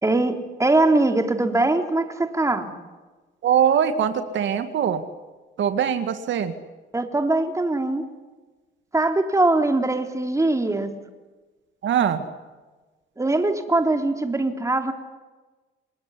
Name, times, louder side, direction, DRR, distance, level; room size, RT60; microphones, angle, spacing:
voice 1, 0.0-2.7 6.9-8.1 8.9-10.9 13.2-14.9, right 2 dB, 15° right, 6 dB, 3.5 m, -22 dB
voice 2, 3.4-5.0 5.6-6.5 11.8-12.2, right 8 dB, 70° right, 9 dB, 2.0 m, -22 dB
28.0 x 20.0 x 9.9 m, 1.2 s
cardioid pair, 90°, 20 cm